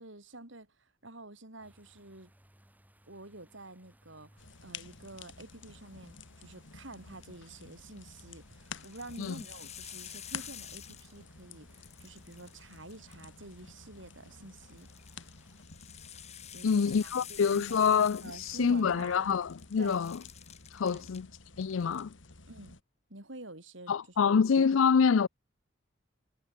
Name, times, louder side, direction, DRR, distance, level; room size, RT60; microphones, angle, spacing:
voice 1, 0.0-2.3 3.1-14.9 16.5-17.9 18.2-19.4 19.8-20.0 20.9-21.1 22.5-22.8 23.1-23.9 24.2-24.4, right 2 dB, 70° right, 5.0 m, -49 dB
sound 1, 1.6-15.6, right 1 dB, 10° right, 5.4 m, -65 dB
sound 2, 4.4-22.8, left 5 dB, 70° left, 2.2 m, -51 dB
sound 3, 7.8-8.2 8.6-11.4 11.7-13.5 14.7-19.2 19.5-21.2 21.6-22.0, left 10 dB, 35° left, 5.3 m, -49 dB
voice 2, 16.6-20.2 20.7-21.3 21.6-22.1 23.9-25.3, left 6 dB, 85° left, 0.4 m, -26 dB
head